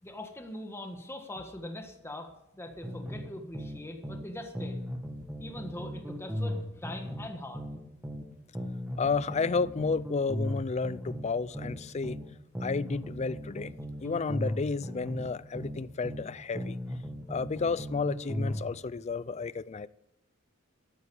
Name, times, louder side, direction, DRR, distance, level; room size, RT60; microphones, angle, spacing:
voice 1, 0.0-4.9 5.4-7.6, left 1 dB, 10° left, 1.6 m, -42 dB
sound 1, 2.8-4.3 4.6-8.3 8.6-12.3 12.6-16.3 16.6-18.7, equal, 10° right, 1.9 m, -37 dB
voice 2, 9.0-12.2 12.6-13.7 14.0-16.8 17.3-19.9, left 4 dB, 30° left, 0.4 m, -31 dB
13.0 x 9.4 x 7.2 m
head